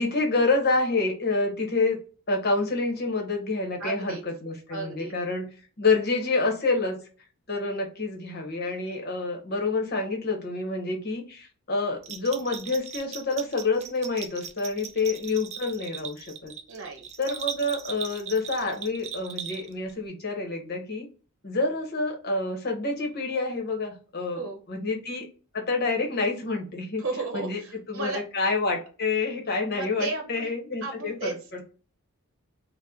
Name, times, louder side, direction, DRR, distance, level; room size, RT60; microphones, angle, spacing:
voice 1, 0.0-2.0 2.3-5.5 5.8-7.0 7.5-16.5 17.2-21.1 21.4-25.3 25.5-27.0 27.3-27.6 27.9-31.6, left 3 dB, 45° left, 2 dB, 0.9 m, -28 dB
voice 2, 3.8-4.2 4.7-5.1 16.7-17.1 24.4-24.6 27.0-28.2 29.7-30.5 30.8-31.4, right 3 dB, 65° right, 2 dB, 0.8 m, -34 dB
Bell, 12.0-19.9, right 7 dB, 30° right, 0.3 m, -39 dB
2.9 x 2.1 x 3.5 m, 0.36 s
head